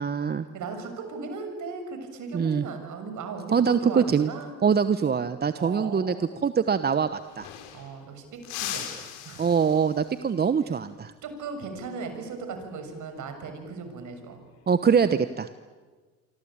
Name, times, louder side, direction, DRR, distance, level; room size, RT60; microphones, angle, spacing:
voice 1, 0.0-0.4 2.3-2.7 3.5-4.3 4.6-7.5 9.4-11.1 14.7-15.5, right 6 dB, 25° right, 12 dB, 1.1 m, -23 dB
voice 2, 0.5-4.5 5.5-6.3 7.7-8.3 8.5-9.5 10.7-10.8 11.2-14.4, right 4 dB, 50° right, 7 dB, 6.8 m, -37 dB
sound 1, 6.8-6.9 7.1-8.0 8.4-10.2 12.7-13.0 14.4-14.9, left 11 dB, 70° left, 4.3 m, -39 dB
27.0 x 24.5 x 8.9 m, 1.4 s
supercardioid pair, 85°, 38 cm